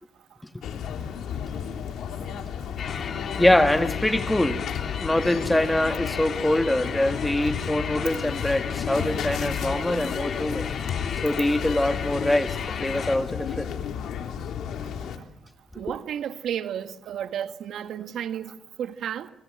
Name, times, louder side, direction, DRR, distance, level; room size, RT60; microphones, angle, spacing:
sound 1, 0.6-15.2, left 8 dB, 75° left, 3.2 m, -33 dB
sound 2, 2.8-13.2, left 6 dB, 55° left, 2.3 m, -34 dB
voice 1, 3.4-4.6 5.0-10.7 11.2-13.8, left 1 dB, 10° left, 1.8 m, -24 dB
voice 2, 15.7-19.3, right 9 dB, 70° right, 1.5 m, -32 dB
26.5 x 24.5 x 7.7 m
cardioid pair, 90°, 0 cm